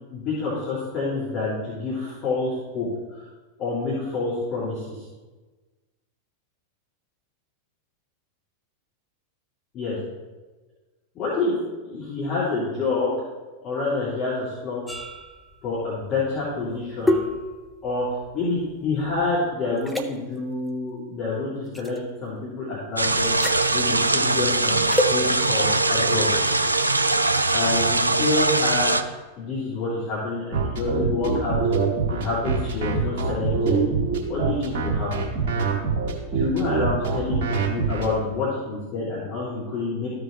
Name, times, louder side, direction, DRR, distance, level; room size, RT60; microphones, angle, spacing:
voice 1, 0.1-3.2 3.6-5.0 9.7-10.0 11.1-13.1 13.6-15.0 15.6-17.2 17.8-18.1 18.3-23.3 23.7-24.8 25.0-26.3 27.5-29.0 29.4-31.6 32.1-33.8 34.3-35.3 36.3-40.1, left 3 dB, 35° left, -9 dB, 3.0 m, -27 dB
sound 1, 14.9-19.4 19.8-20.1 21.7-22.0 23.2-23.6 24.9-25.1, left 1 dB, ahead, 0.8 m, -28 dB
sound 2, 23.0-29.0, right 2 dB, 85° right, 0.4 m, -21 dB
sound 3, 30.5-38.1, right 5 dB, 50° right, 2.1 m, -24 dB
14.0 x 5.0 x 3.2 m, 1.3 s
figure-of-eight pair, 90°, 0 cm